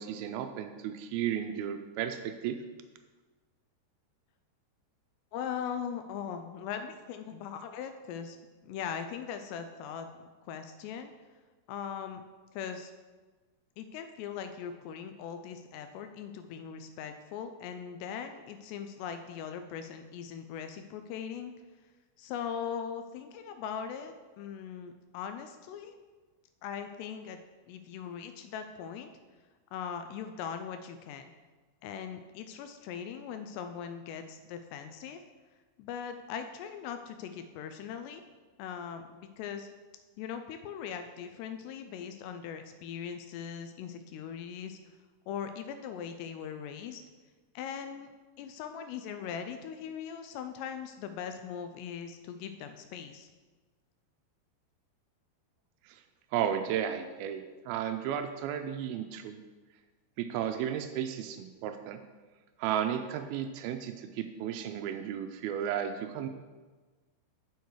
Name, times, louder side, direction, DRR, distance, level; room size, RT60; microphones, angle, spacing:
voice 1, 0.0-2.6 55.9-56.0 56.3-59.4 60.2-62.0 62.6-66.3, right 9 dB, 90° right, 7 dB, 2.1 m, -34 dB
voice 2, 5.3-8.4 8.6-10.1 10.4-11.1 11.7-12.2 12.5-12.9 13.8-21.5 22.2-26.0 26.6-27.4 27.7-29.1 29.7-31.3 31.8-35.2 35.8-38.2 38.6-39.7 40.2-44.8 45.3-47.0 47.6-48.1 48.4-53.3, left 7 dB, 85° left, 8 dB, 2.7 m, -40 dB
9.2 x 6.5 x 4.7 m, 1.3 s
omnidirectional pair, 4.9 m